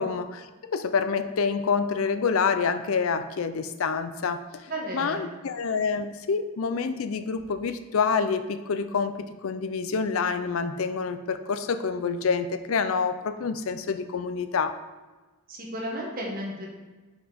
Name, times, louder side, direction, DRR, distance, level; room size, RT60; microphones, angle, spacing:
voice 1, 0.0-4.4 4.9-14.8, left 5 dB, 75° left, 10 dB, 0.5 m, -27 dB
voice 2, 4.7-5.3 15.5-16.7, right 1 dB, 40° right, -2 dB, 1.7 m, -33 dB
6.3 x 5.0 x 5.1 m, 1.2 s
head